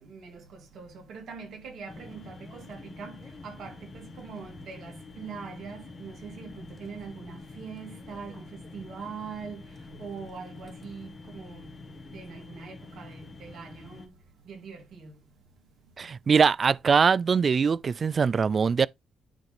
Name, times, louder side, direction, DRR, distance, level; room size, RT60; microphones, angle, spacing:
voice 1, 0.0-3.2 3.4-9.6 10.0-11.7 12.1-14.1 14.5-15.2, right 5 dB, 65° right, 3.0 m, -42 dB
sound 1, 1.9-14.1, left 3 dB, 30° left, 1.5 m, -46 dB
voice 2, 16.0-18.9, right 5 dB, 40° right, 0.3 m, -22 dB
10.5 x 3.8 x 3.4 m
cardioid pair, 90°, 0 cm